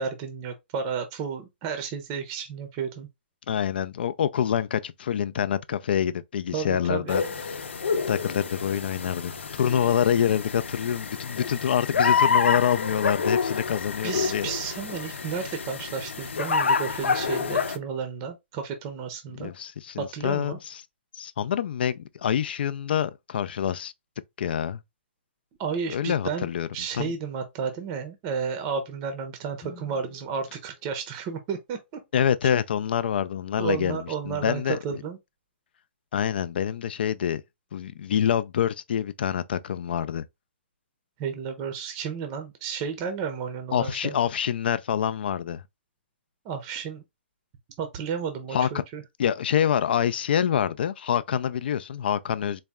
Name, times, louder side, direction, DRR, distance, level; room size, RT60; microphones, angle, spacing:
voice 1, 0.0-3.1 6.5-7.3 14.0-19.5 20.0-20.6 25.6-26.5 26.7-32.0 33.6-35.2 41.2-44.2 46.4-47.0 47.8-49.0, right 6 dB, 25° right, 0.6 m, -32 dB
voice 2, 3.5-7.2 7.5-7.6 8.1-9.3 9.6-14.5 19.4-20.8 21.1-23.9 24.4-24.8 25.9-26.7 26.9-27.1 32.1-35.0 36.1-37.4 37.7-40.2 43.7-45.6 48.5-48.8 49.2-52.6, left 9 dB, 55° left, 0.4 m, -26 dB
sound 1, 7.1-17.8, left 5 dB, 85° left, 0.7 m, -28 dB
Guitar, 29.6-32.2, left 5 dB, 15° left, 0.7 m, -52 dB
4.1 x 2.2 x 3.5 m
hypercardioid pair, 155°, 6 cm